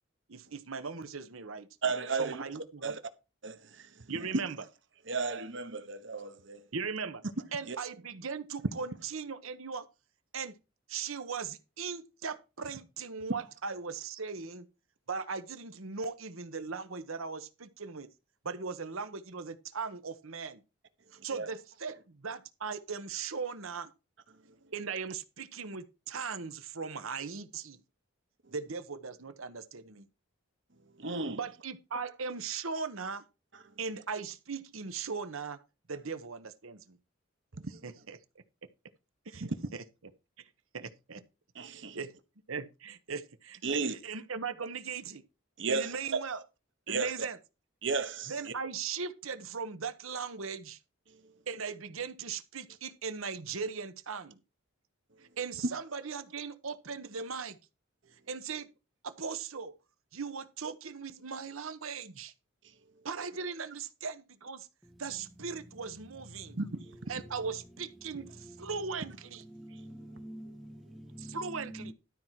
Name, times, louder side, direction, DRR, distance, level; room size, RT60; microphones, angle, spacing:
voice 1, 0.3-1.7 2.1-3.0 4.1-4.7 6.7-7.2 7.5-9.8 10.3-10.5 10.9-14.7 15.1-18.1 18.4-20.6 21.2-23.9 24.7-27.8 28.5-30.1 31.3-33.2 33.8-35.6 35.9-37.0 37.7-38.2 39.2-40.1 40.4-40.5 40.7-41.2 41.7-42.1 42.5-45.2 45.7-46.4 46.9-47.4 48.2-50.8 51.5-54.4 55.2-57.6 58.3-58.7 59.0-59.7 60.1-62.3 63.0-64.7 65.0-66.6 67.1-69.4 71.2-71.9, right 5 dB, 75° right, 1.0 m, -39 dB
voice 2, 1.8-2.4 2.8-3.0 3.4-4.4 5.1-6.7 7.7-7.8 21.3-21.5 30.9-31.4 37.6-37.9 39.4-39.6 41.5-42.0 43.6-43.9 45.6-46.2 46.9-47.1 47.8-48.5 51.1-51.3 66.6-66.9 69.7-70.2, right 4 dB, 60° right, 1.1 m, -34 dB
voice 3, 64.8-71.9, equal, ahead, 0.8 m, -49 dB
12.5 x 4.6 x 5.7 m
head